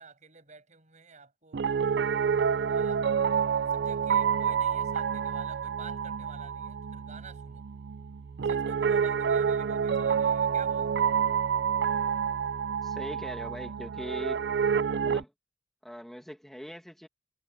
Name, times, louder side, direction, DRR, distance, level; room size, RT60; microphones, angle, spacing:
voice 1, 0.0-2.1 2.7-3.4 3.7-7.6 8.4-11.1, right 4 dB, 45° right, 7.0 m, -50 dB
Piano, 1.5-15.2, right 7 dB, 65° right, 0.4 m, -28 dB
voice 2, 12.8-14.4 15.0-15.3 15.8-17.1, equal, ahead, 2.0 m, -41 dB
head